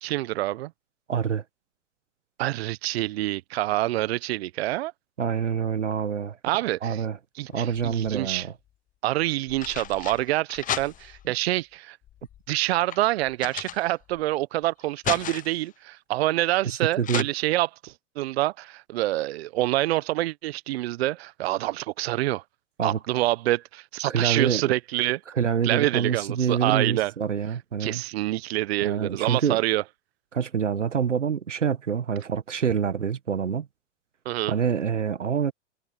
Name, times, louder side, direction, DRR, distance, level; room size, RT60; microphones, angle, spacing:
voice 1, 0.0-0.7 2.4-4.9 6.4-7.0 7.4-8.5 9.0-12.0 12.5-22.4 22.8-25.2 25.6-27.1 27.8-29.8 34.2-34.5, right 16 dB, 60° right, 1.2 m, -26 dB
voice 2, 1.1-1.4 5.2-6.4 6.8-7.2 7.5-8.5 16.6-17.3 22.8-23.0 24.0-24.7 25.3-28.0 28.8-29.6 30.3-33.7 34.5-35.5, right 7 dB, 85° right, 1.6 m, -26 dB
sound 1, 7.5-8.3 9.2-11.3 12.0-14.3 14.6-15.7 17.0-17.2, left 11 dB, 20° left, 1.0 m, -35 dB
hypercardioid pair, 100°, 36 cm